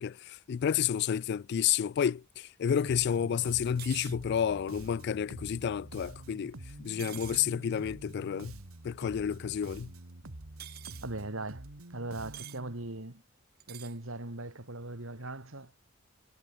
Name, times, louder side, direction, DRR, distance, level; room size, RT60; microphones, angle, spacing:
voice 1, 0.0-8.5 8.8-9.9, left 8 dB, 50° left, 0.3 m, -30 dB
Bass guitar, 2.8-12.7, right 1 dB, 90° right, 2.1 m, -47 dB
sound 1, 3.8-4.2 7.0-7.5 10.6-11.0 12.3-12.6 13.6-14.0, right 13 dB, 50° right, 1.2 m, -45 dB
voice 2, 11.0-11.6 11.9-13.2 13.7-15.7, right 2 dB, 70° right, 2.7 m, -39 dB
head